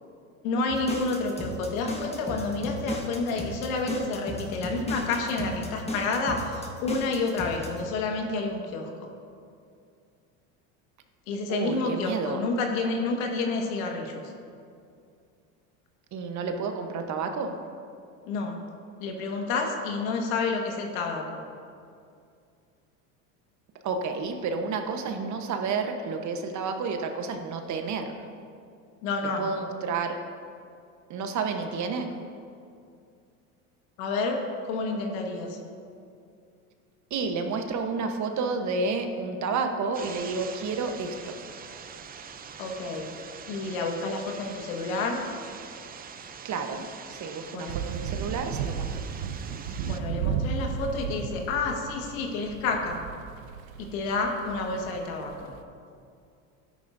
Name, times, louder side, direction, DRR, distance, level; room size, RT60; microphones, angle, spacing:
voice 1, 0.4-9.1 11.3-14.2 18.3-18.6 19.0-21.4 29.0-29.5 34.0-35.6 42.6-43.1 43.5-45.2 47.5-47.8 49.8-53.0 53.8-55.5, left 3 dB, 75° left, 2 dB, 1.7 m, -29 dB
sound 1, 0.7-7.8, left 2 dB, 15° left, 1.4 m, -35 dB
voice 2, 11.5-12.4 16.1-17.6 23.8-28.1 29.4-30.2 31.1-32.1 37.1-41.4 46.4-48.9, right 4 dB, 45° right, 6 dB, 1.1 m, -30 dB
sound 2, 39.9-50.0, right 6 dB, 20° right, 0.5 m, -44 dB
sound 3, 47.7-55.6, right 7 dB, 75° right, 0.8 m, -34 dB
13.0 x 10.0 x 2.7 m, 2.4 s
supercardioid pair, 95°, 42 cm